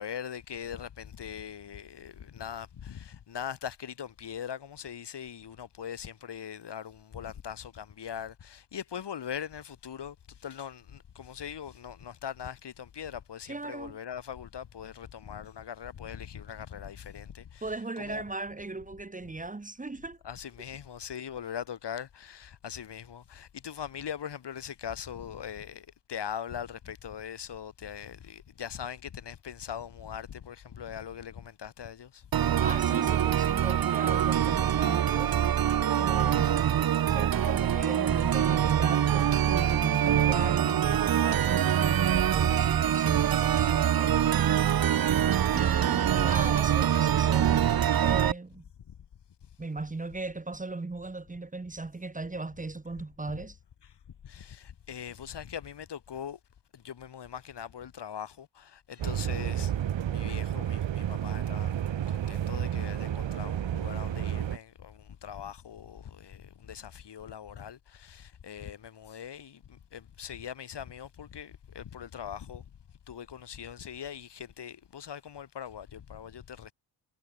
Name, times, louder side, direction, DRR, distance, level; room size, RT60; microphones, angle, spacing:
voice 1, 0.0-18.2 20.2-32.3 48.9-49.0 53.3-53.4 53.8-53.9 54.2-56.4 56.7-59.7 60.0-72.7 73.1-76.7, left 8 dB, 60° left, 8.0 m, -41 dB
voice 2, 13.5-14.0 17.6-20.2 32.6-35.4 36.0-36.7 37.0-44.2 45.5-47.6 48.0-48.6 49.6-53.6, right 3 dB, 15° right, 2.5 m, -37 dB
sound 1, 32.3-48.3, right 10 dB, 50° right, 1.0 m, -24 dB
sound 2, 59.0-64.6, right 10 dB, 75° right, 3.0 m, -31 dB
wide cardioid pair, 160°, 46 cm